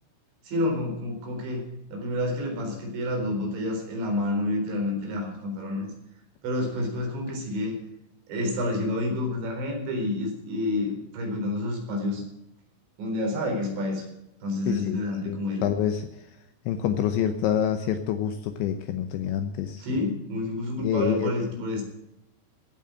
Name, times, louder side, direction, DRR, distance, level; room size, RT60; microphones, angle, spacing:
voice 1, 0.4-1.6 1.9-5.9 6.4-7.8 8.3-12.2 13.0-14.1 14.4-15.7 19.8-21.8, left 1 dB, 60° right, 2 dB, 6.1 m, -29 dB
voice 2, 14.7-16.3 16.7-19.9 20.8-21.6, left 9 dB, 75° left, 8 dB, 2.8 m, -27 dB
16.5 x 9.0 x 7.6 m, 0.86 s
omnidirectional pair, 6.0 m